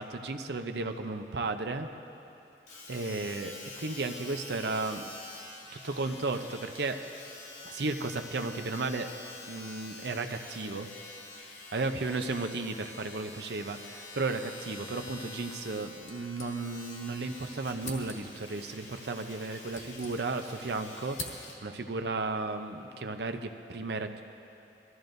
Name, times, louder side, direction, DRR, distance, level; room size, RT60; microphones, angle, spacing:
voice 1, 0.0-1.9 2.9-5.0 5.8-7.0 7.6-9.1 9.5-10.9 11.7-21.2 21.6-24.2, right 3 dB, 70° right, 6 dB, 0.7 m, -34 dB
Domestic sounds home sounds, 2.7-21.6 22.3-22.4, left 2 dB, 90° left, 2.8 m, -47 dB
sound 1, 16.0-17.0 17.3-17.4 17.8-18.5 19.3-20.6 20.9-21.8, left 2 dB, 40° left, 1.5 m, -45 dB
23.0 x 14.0 x 2.6 m, 2.8 s
head